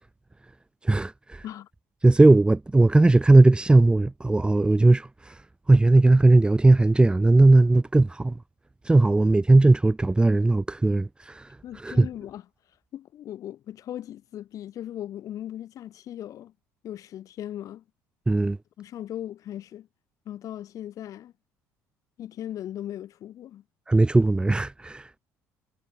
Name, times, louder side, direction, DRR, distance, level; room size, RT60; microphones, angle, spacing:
voice 1, 0.8-1.4 2.0-5.3 5.7-8.4 8.8-11.5 11.8-12.1 18.3-18.6 23.9-25.2, right 2 dB, 15° right, 1.2 m, -18 dB
voice 2, 11.6-12.4 12.9-16.5 16.8-17.8 18.8-19.9 20.3-21.3 22.2-23.6, left 11 dB, 60° left, 4.3 m, -38 dB
supercardioid pair, 80°, 6 cm